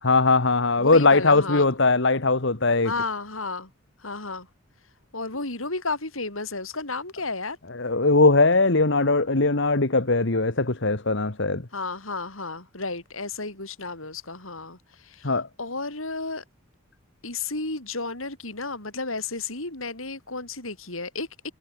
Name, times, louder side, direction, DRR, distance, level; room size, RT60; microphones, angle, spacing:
voice 1, 0.0-2.9 7.7-11.7 15.2-15.5, left 3 dB, 60° left, 1.7 m, -20 dB
voice 2, 0.8-1.7 2.8-3.7 4.0-4.5 5.1-7.6 11.7-15.3 15.6-16.4 17.2-21.5, left 3 dB, 75° left, 7.5 m, -32 dB
head